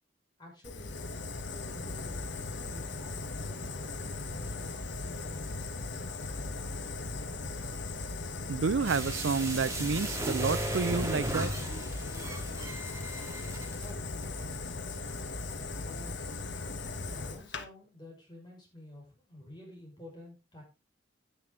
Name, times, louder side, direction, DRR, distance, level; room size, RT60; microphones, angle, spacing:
voice 1, 0.4-1.0 1.5-2.2 2.5-5.9 13.8-14.9 15.8-16.4 16.9-20.6, left 1 dB, 20° left, 5.5 m, -50 dB
Fire, 0.6-17.6, left 3 dB, 65° left, 1.3 m, -38 dB
voice 2, 8.5-11.5, right 5 dB, 70° right, 0.5 m, -30 dB
sound 1, 8.8-13.9 14.2-14.3, right 1 dB, 15° right, 1.9 m, -36 dB
10.0 x 10.0 x 3.7 m
head